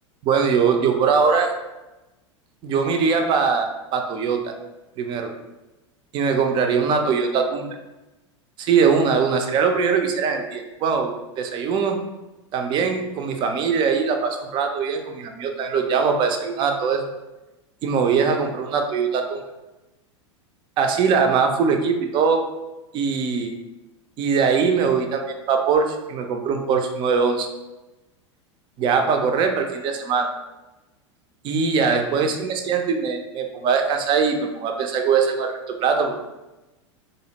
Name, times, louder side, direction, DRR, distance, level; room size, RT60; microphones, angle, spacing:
voice 1, 0.2-1.5 2.6-4.5 5.0-5.3 6.1-7.7 8.6-12.0 12.5-17.0 17.8-19.4 20.8-22.4 22.9-23.5 24.2-27.5 28.8-30.3 31.4-36.2, right 5 dB, 30° right, 5 dB, 0.4 m, -21 dB
2.4 x 2.1 x 2.8 m, 1.0 s
figure-of-eight pair, 85°, 16 cm